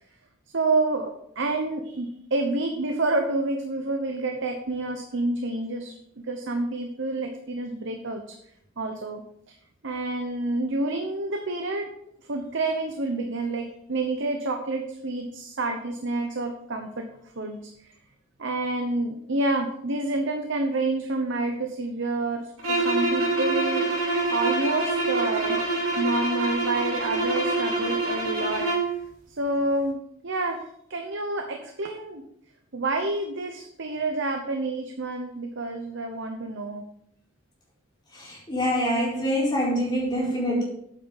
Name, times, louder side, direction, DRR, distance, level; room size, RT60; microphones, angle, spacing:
voice 1, 0.5-6.0 6.3-8.4 8.8-9.6 9.8-11.9 12.3-17.1 17.4-18.0 18.4-23.9 24.3-25.6 26.0-28.9 29.3-32.2 32.7-36.9, right 2 dB, 60° right, 4 dB, 0.9 m, -28 dB
sound 1, 22.6-29.0, right 2 dB, 85° right, 2.4 m, -25 dB
voice 2, 38.1-40.6, equal, 20° left, -6 dB, 4.3 m, -25 dB
8.9 x 8.8 x 4.0 m, 0.72 s
head